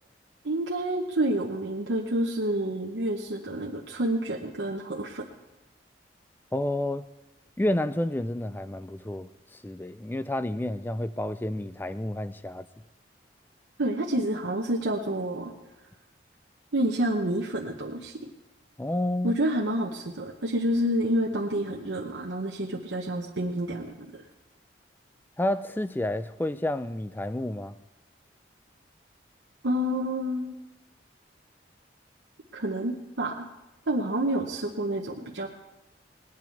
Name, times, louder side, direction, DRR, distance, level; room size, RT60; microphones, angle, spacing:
voice 1, 0.4-5.3 13.8-15.5 16.7-18.1 19.2-24.2 29.6-30.5 32.5-33.5 33.9-35.5, right 1 dB, 80° right, 0.9 m, -28 dB
voice 2, 6.5-7.1 7.6-9.3 9.6-12.7 18.8-19.4 25.4-27.7, left 1 dB, 10° left, 0.3 m, -30 dB
19.0 x 9.5 x 4.6 m
head